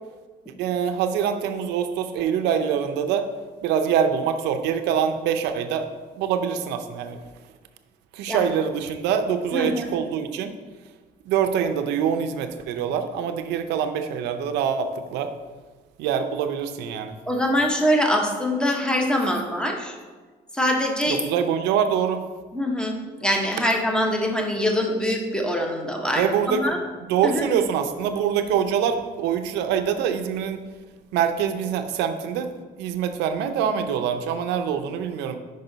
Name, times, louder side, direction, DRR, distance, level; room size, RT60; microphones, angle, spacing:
voice 1, 0.6-3.2 3.6-5.9 6.2-7.2 8.1-10.5 11.3-15.3 16.0-17.1 21.1-22.2 26.2-26.8 27.1-30.6 31.1-32.5 32.8-35.4, right 8 dB, 85° right, 8 dB, 0.6 m, -24 dB
voice 2, 9.5-9.9 17.3-19.9 20.5-21.2 22.5-26.8 27.2-27.5, equal, 5° left, 2 dB, 0.9 m, -24 dB
5.5 x 5.3 x 3.9 m, 1.4 s
cardioid pair, 110°, 17 cm